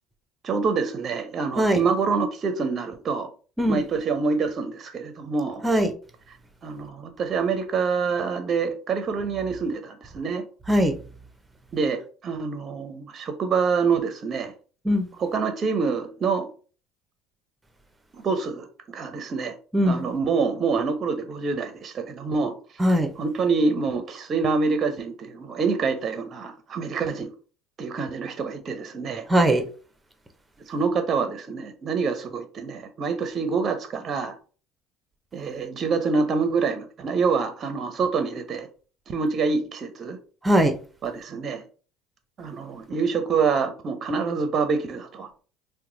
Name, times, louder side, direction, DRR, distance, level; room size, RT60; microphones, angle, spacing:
voice 1, 0.4-3.3 3.7-5.6 6.6-10.5 11.7-14.5 15.2-16.5 18.1-18.7 18.9-19.5 19.9-22.5 23.2-27.3 27.8-29.3 30.7-34.3 35.3-38.7 39.1-40.2 41.0-41.6 42.4-45.5, right 5 dB, 40° right, 0.6 m, -26 dB
voice 2, 29.3-29.7 40.4-40.7, equal, 15° right, 0.7 m, -20 dB
2.9 x 2.1 x 3.8 m
hypercardioid pair, 75°, 0 cm